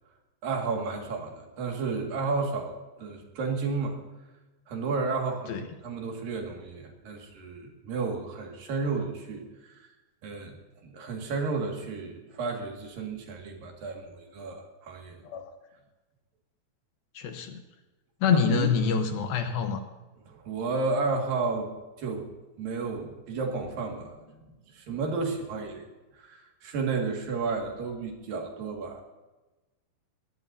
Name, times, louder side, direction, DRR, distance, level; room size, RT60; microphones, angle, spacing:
voice 1, 0.4-4.0 4.7-9.9 10.2-10.6 10.8-15.2 18.3-18.7 20.3-22.3 22.6-24.4 24.7-25.9 26.1-29.0, right 4 dB, 65° right, 1 dB, 3.7 m, -32 dB
voice 2, 17.1-17.6 18.2-19.8, left 6 dB, 75° left, 5 dB, 2.8 m, -26 dB
22.0 x 17.0 x 2.8 m, 1.1 s
omnidirectional pair, 4.5 m